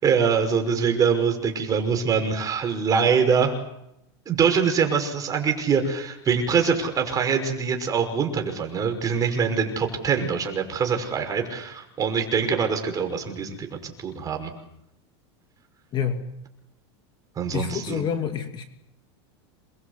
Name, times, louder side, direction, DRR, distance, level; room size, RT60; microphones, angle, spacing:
voice 1, 0.0-3.6 4.3-14.5 17.4-18.0, right 6 dB, 25° right, 4 dB, 5.7 m, -24 dB
voice 2, 15.9-16.2 17.5-18.6, left 7 dB, 30° left, 6 dB, 2.6 m, -27 dB
27.5 x 22.5 x 8.3 m, 0.82 s
supercardioid pair, 135°, 15 cm